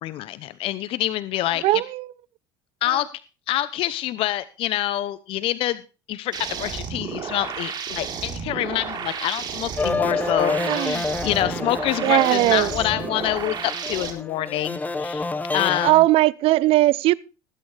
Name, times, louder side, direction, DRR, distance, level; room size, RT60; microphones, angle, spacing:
voice 1, 0.0-1.6 2.8-3.1 3.5-5.8 6.1-15.9, left 14 dB, 55° left, 0.9 m, -26 dB
voice 2, 1.6-2.1 2.9-3.0 10.6-11.0 12.0-12.7 15.8-17.1, right 17 dB, 60° right, 0.7 m, -19 dB
sound 1, 6.3-14.1, right 7 dB, 40° right, 3.9 m, -32 dB
sound 2, 9.8-15.9, left 3 dB, 15° left, 1.4 m, -28 dB
20.0 x 8.8 x 3.4 m
supercardioid pair, 110°, 11 cm